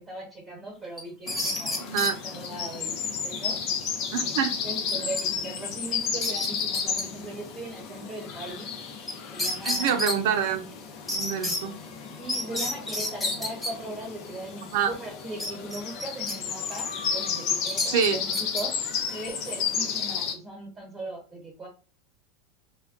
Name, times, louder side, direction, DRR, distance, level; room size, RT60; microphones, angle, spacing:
voice 1, 0.0-3.6 3.9-4.4 4.6-8.7 9.3-10.0 12.2-18.7 19.1-21.7, right 2 dB, 20° right, -2 dB, 1.3 m, -39 dB
sound 1, 1.0-2.1 4.9-5.2 5.6-5.7 6.0-7.0 9.1-9.2 9.4-10.2 11.1-11.6 12.3-13.7 15.4-16.4 16.7-16.9 17.7-18.6, left 1 dB, 5° left, 0.8 m, -30 dB
sound 2, 1.3-20.3, left 6 dB, 50° left, 0.7 m, -33 dB
voice 2, 1.8-2.2 4.1-4.5 9.6-10.6 11.1-11.8 14.7-14.9 17.9-18.2, right 7 dB, 70° right, 8 dB, 0.6 m, -26 dB
2.3 x 2.2 x 3.7 m, 0.35 s
supercardioid pair, 120°, 0 cm